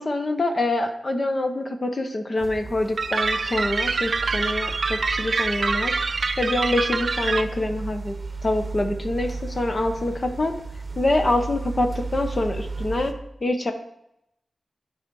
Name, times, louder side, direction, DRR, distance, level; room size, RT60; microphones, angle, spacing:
voice 1, 0.0-6.0 6.4-10.6 11.0-13.1 13.4-13.7, left 2 dB, 40° left, 6 dB, 0.9 m, -25 dB
sound 1, 2.4-13.1, right 3 dB, 40° right, 0.9 m, -34 dB
sound 2, 3.0-7.4, right 4 dB, 65° right, 0.4 m, -25 dB
11.0 x 4.9 x 4.7 m, 0.82 s
wide cardioid pair, 100°, 0 cm